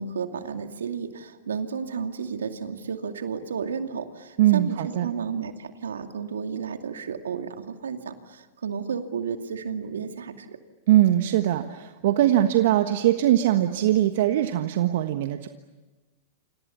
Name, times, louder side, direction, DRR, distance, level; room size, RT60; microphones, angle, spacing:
voice 1, 0.0-10.6, right 6 dB, 75° right, 6 dB, 2.4 m, -32 dB
voice 2, 4.4-5.1 10.9-15.5, right 13 dB, 60° right, 8 dB, 1.4 m, -21 dB
29.5 x 27.0 x 7.1 m, 1.2 s
hypercardioid pair, 105°, 0 cm